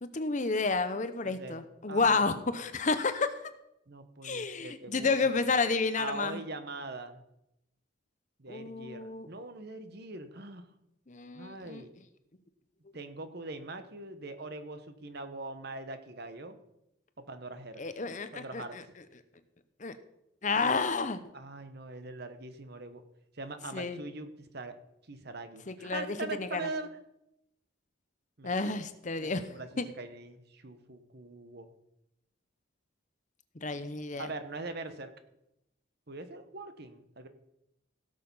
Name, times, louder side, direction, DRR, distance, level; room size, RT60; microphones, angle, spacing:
voice 1, 0.0-3.3 4.2-6.4 8.5-9.3 11.1-11.8 17.8-18.8 19.8-19.9 20.4-21.2 23.7-24.0 25.7-26.6 28.4-29.4 29.8-29.9 33.6-34.3, left 4 dB, 35° left, 11 dB, 0.8 m, -30 dB
voice 2, 1.2-1.6 1.9-2.3 3.9-5.2 6.0-7.2 8.4-10.7 11.3-11.9 12.9-16.6 17.3-17.8 18.3-18.8 20.5-20.8 21.3-23.0 23.3-24.7 25.1-26.9 28.4-28.7 29.2-29.7 30.0-31.7 34.2-35.1 36.1-37.3, right 3 dB, 50° right, 9 dB, 1.1 m, -42 dB
16.5 x 6.7 x 5.5 m, 0.85 s
head